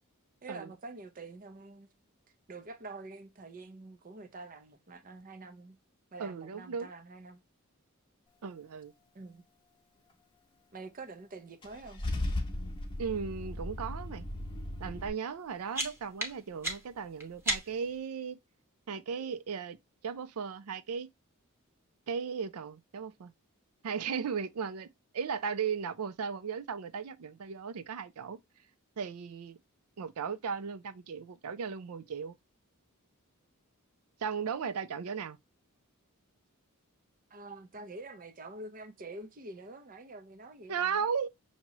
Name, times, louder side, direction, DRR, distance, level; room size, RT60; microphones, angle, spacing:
voice 1, 0.4-1.9 2.5-5.8 6.1-7.4 9.1-9.4 10.7-12.0 37.3-41.1, right 2 dB, 40° right, 0.6 m, -46 dB
voice 2, 6.2-6.9 8.4-8.9 13.0-14.2 14.8-18.4 18.9-19.8 20.0-21.1 22.1-23.3 23.8-24.9 25.1-28.4 29.0-29.6 30.0-32.3 34.2-35.4 40.7-41.3, right 6 dB, 85° right, 0.5 m, -36 dB
Car / Engine starting / Idling, 11.6-15.1, left 1 dB, 25° left, 0.9 m, -36 dB
sound 1, 15.3-18.0, right 1 dB, 10° right, 1.0 m, -37 dB
5.9 x 2.9 x 2.8 m
head